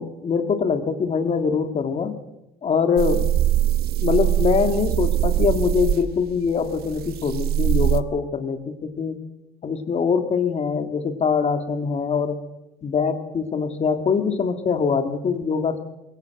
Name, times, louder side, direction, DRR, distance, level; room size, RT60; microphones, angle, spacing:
voice 1, 0.0-2.2 2.6-3.3 4.0-9.2 9.6-12.4 12.8-15.8, left 6 dB, 40° left, 9 dB, 2.0 m, -23 dB
sound 1, 3.0-8.0, right 12 dB, 65° right, 1.0 m, -22 dB
21.0 x 17.5 x 7.8 m, 0.92 s
cardioid pair, 110°, 17 cm